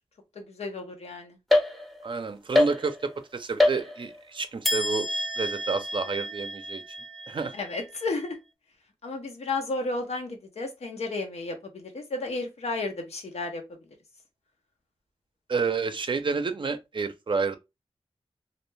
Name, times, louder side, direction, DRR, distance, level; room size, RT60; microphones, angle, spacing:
voice 1, 0.4-1.4 7.5-8.4 9.0-13.6, left 3 dB, 90° left, 0.7 m, -33 dB
sound 1, 1.5-2.2 2.5-3.2 3.6-4.3 4.6-8.1, left 1 dB, ahead, 0.6 m, -27 dB
voice 2, 2.0-5.1 5.4-6.8 7.3-7.5 15.5-17.6, right 4 dB, 50° right, 0.5 m, -29 dB
2.4 x 2.2 x 3.1 m
wide cardioid pair, 65°, 11 cm